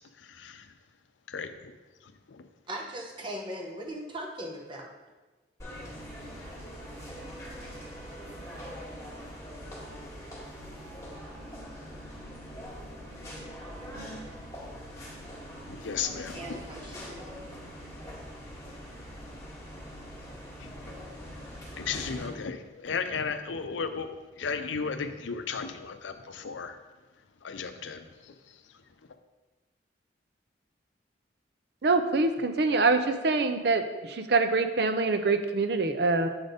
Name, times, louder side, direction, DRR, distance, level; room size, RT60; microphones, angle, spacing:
voice 1, 0.2-0.7 1.3-1.5 2.3-2.5 15.7-16.6 17.0-17.1 20.6-20.9 21.3-24.1 24.4-26.8 27.4-28.3, left 5 dB, 85° left, 9 dB, 0.5 m, -35 dB
voice 2, 2.7-4.9 16.3-17.4, right 1 dB, 25° right, 1 dB, 1.0 m, -39 dB
sound 1, 5.6-22.3, equal, 15° left, 1.9 m, -43 dB
voice 3, 31.8-36.3, right 3 dB, 60° right, 8 dB, 0.5 m, -25 dB
7.8 x 4.2 x 5.1 m, 1.2 s
head